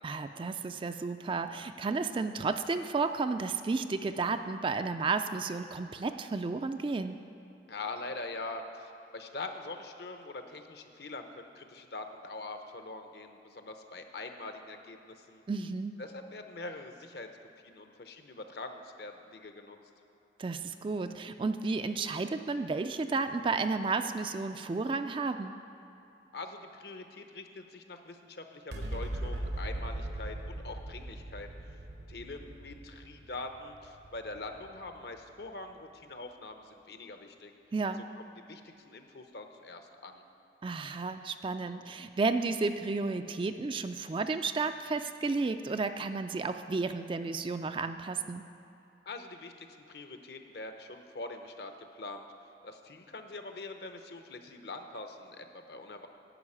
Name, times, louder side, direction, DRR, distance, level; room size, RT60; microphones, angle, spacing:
voice 1, 0.0-7.2 15.5-16.0 20.4-25.6 37.7-38.0 40.6-48.4, right 4 dB, 30° right, 9 dB, 0.3 m, -32 dB
voice 2, 7.7-15.4 16.0-17.3 17.6-19.8 26.3-31.5 32.1-37.5 38.4-40.2 49.1-52.3 52.6-56.1, left 3 dB, 60° left, 6 dB, 0.8 m, -43 dB
sound 1, 28.7-35.4, right 1 dB, 70° right, 0.9 m, -40 dB
11.0 x 5.7 x 8.6 m, 2.9 s
head